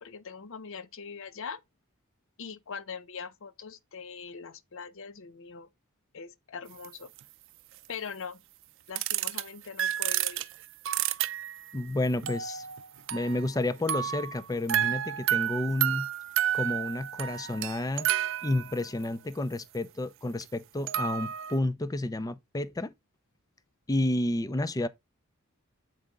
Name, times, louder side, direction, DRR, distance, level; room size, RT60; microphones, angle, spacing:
voice 1, 0.0-1.6 2.4-5.7 6.1-7.1 7.9-8.4 8.9-10.5, left 6 dB, 65° left, 0.6 m, -42 dB
sound 1, 6.8-6.9 7.2-7.3 9.0-9.4 9.8-11.7 12.2-13.6 13.9-19.0 20.4-20.5 20.9-21.6, right 11 dB, 60° right, 0.5 m, -31 dB
voice 2, 11.7-12.7 13.1-16.1 16.5-18.1 18.4-22.9 23.9-24.9, left 1 dB, 15° left, 0.4 m, -30 dB
7.7 x 4.9 x 3.6 m
head